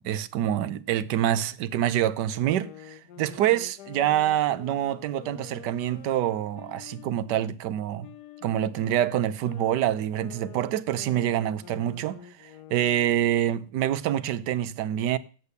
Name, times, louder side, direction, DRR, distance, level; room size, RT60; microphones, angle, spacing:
voice 1, 0.0-8.1 8.4-15.2, right 11 dB, 70° right, 1.2 m, -26 dB
sound 1, 2.3-7.5 8.0-13.6, left 12 dB, 70° left, 1.2 m, -47 dB
8.1 x 7.8 x 8.2 m
omnidirectional pair, 2.0 m